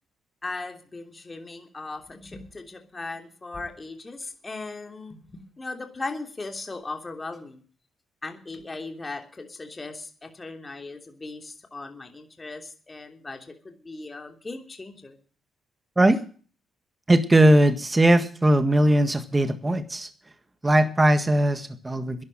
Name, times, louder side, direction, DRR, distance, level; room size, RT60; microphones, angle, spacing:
voice 1, 0.4-7.6 8.2-15.2, left 3 dB, 25° left, 5 dB, 3.1 m, -38 dB
voice 2, 17.1-20.1 20.6-22.2, right 1 dB, 20° right, 10 dB, 1.7 m, -19 dB
12.0 x 11.0 x 7.5 m, 0.41 s
cardioid pair, 90°, 0 cm